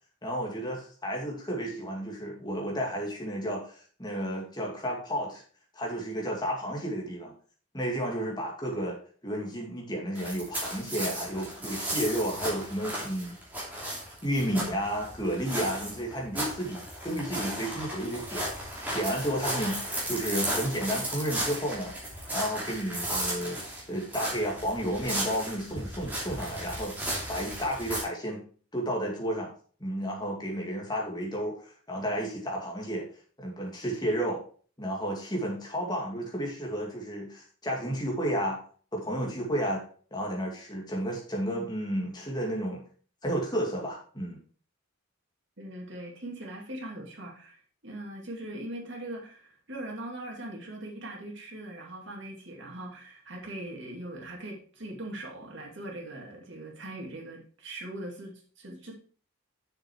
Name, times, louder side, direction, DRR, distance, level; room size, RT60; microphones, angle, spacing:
voice 1, 0.2-5.4 5.7-7.3 7.7-9.0 9.2-13.3 14.2-21.9 22.3-23.6 23.9-28.4 28.7-29.5 29.8-33.1 33.4-34.4 34.8-38.6 38.9-39.8 40.1-42.8 43.2-44.4, equal, 20° left, -1 dB, 2.4 m, -32 dB
walking on pebbles, 10.2-28.0, right 1 dB, 10° right, 2.8 m, -35 dB
voice 2, 45.6-58.9, right 1 dB, 60° right, -1 dB, 2.6 m, -41 dB
7.2 x 6.6 x 4.6 m, 0.43 s
head